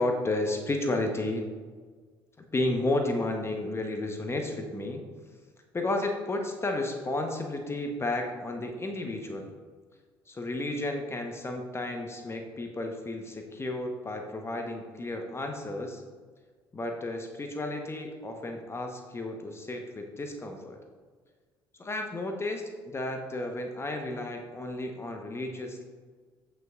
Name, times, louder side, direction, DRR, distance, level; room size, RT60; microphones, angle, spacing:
voice 1, 0.0-1.5 2.5-5.0 5.7-9.5 10.3-16.0 16.7-20.8 21.8-25.8, left 2 dB, 20° left, 4 dB, 1.1 m, -32 dB
15.0 x 5.7 x 2.5 m, 1.5 s
figure-of-eight pair, 55°, 12 cm